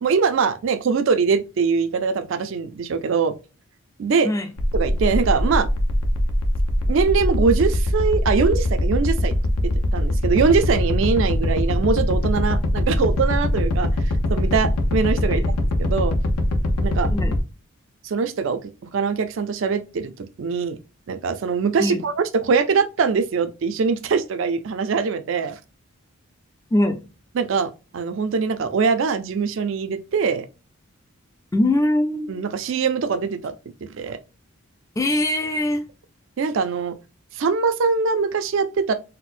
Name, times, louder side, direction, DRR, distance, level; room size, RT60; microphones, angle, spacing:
voice 1, 0.0-3.3 4.0-4.3 4.7-5.7 6.9-9.4 9.9-13.9 14.3-15.4 15.8-16.1 16.8-17.1 18.0-18.6 18.9-20.8 21.1-25.6 27.4-30.5 32.3-33.5 33.8-34.2 36.4-36.9 37.4-38.9, right 5 dB, 55° right, 0.4 m, -22 dB
sound 1, 4.6-17.4, left 1 dB, 85° left, 0.6 m, -22 dB
voice 2, 15.2-15.5 17.1-17.3 21.8-22.1 26.7-27.0 31.5-32.3 35.0-35.8, left 1 dB, 15° left, 0.3 m, -22 dB
4.2 x 2.0 x 2.4 m
head